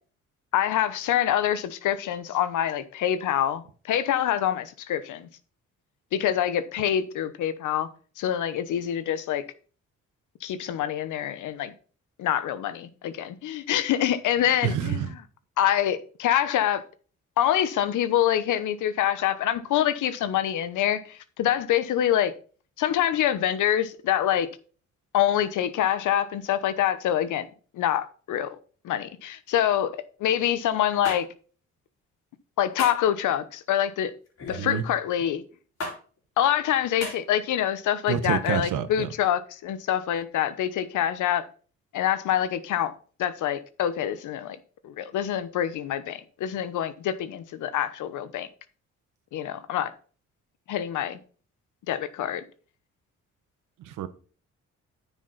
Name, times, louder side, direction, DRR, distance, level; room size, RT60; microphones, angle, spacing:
voice 1, 0.5-5.3 6.1-7.9 8.2-9.4 10.4-11.7 12.2-15.1 15.6-16.8 17.4-22.3 22.8-24.5 25.1-27.5 27.7-28.6 28.8-31.3 32.6-34.1 34.5-35.4 36.4-41.5 41.9-42.9 43.2-44.6 44.8-48.5 49.3-49.9 50.7-51.2 51.9-52.4, left 10 dB, 80° left, 1.0 m, -26 dB
voice 2, 14.6-15.1 34.6-34.8 38.1-39.1 53.9-54.1, right 9 dB, 85° right, 1.1 m, -27 dB
sound 1, 31.0-31.2 32.8-33.1 34.4-34.7 35.8-36.0 37.0-37.2, left 2 dB, 55° left, 4.0 m, -32 dB
9.5 x 7.3 x 4.1 m
cardioid pair, 90°, 30 cm